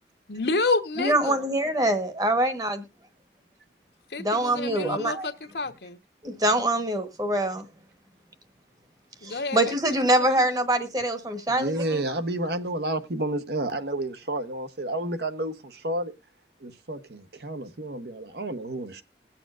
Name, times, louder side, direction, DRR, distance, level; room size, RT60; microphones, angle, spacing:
voice 1, 0.3-1.4 4.1-6.0 9.2-10.4, left 3 dB, 70° left, 1.1 m, -29 dB
voice 2, 1.0-2.8 4.2-5.3 6.2-7.7 9.2-12.0, right 1 dB, 20° right, 1.1 m, -24 dB
voice 3, 11.5-16.1 16.6-19.0, right 1 dB, 70° right, 1.0 m, -30 dB
21.0 x 7.0 x 2.4 m
head